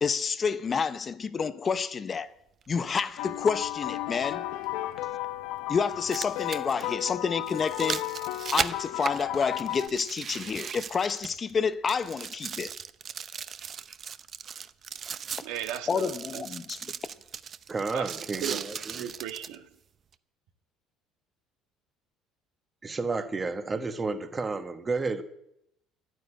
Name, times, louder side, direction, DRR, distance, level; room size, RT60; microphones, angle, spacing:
voice 1, 0.0-2.3 2.7-4.5 5.7-8.0 8.5-12.7 15.9-16.9, left 5 dB, 30° left, 0.7 m, -29 dB
sound 1, 2.6-2.7 4.6-4.7 5.8-11.6 11.9-19.6 20.1-20.2, right 7 dB, 35° right, 0.7 m, -38 dB
sound 2, 3.2-9.9, left 15 dB, 80° left, 0.9 m, -34 dB
voice 2, 15.4-16.4 17.9-19.7, right 10 dB, 85° right, 2.0 m, -37 dB
voice 3, 17.7-19.1 22.8-25.2, right 3 dB, 20° right, 1.3 m, -31 dB
12.0 x 9.3 x 10.0 m
cardioid pair, 125°, 0 cm